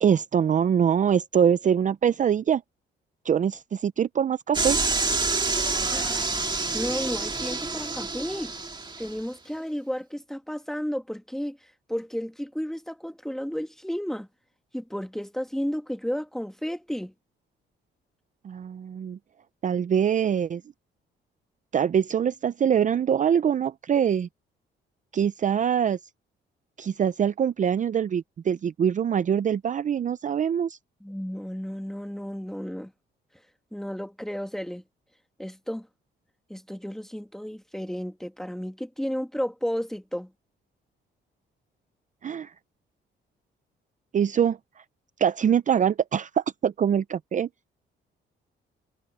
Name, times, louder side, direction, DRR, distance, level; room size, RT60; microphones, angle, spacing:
voice 1, 0.0-2.6 3.2-4.8 18.4-19.2 19.6-20.6 21.7-24.3 25.1-26.0 26.8-30.8 42.2-42.5 44.1-44.6 45.2-47.5, right 8 dB, 40° right, 0.5 m, -24 dB
sound 1, 4.5-9.1, right 3 dB, 20° right, 2.1 m, -27 dB
voice 2, 5.9-8.5 9.0-11.6 11.9-14.3 14.7-17.1 31.0-32.9 33.7-34.8 35.4-35.9 36.5-40.3, equal, ahead, 1.9 m, -33 dB
cardioid pair, 90°, 20 cm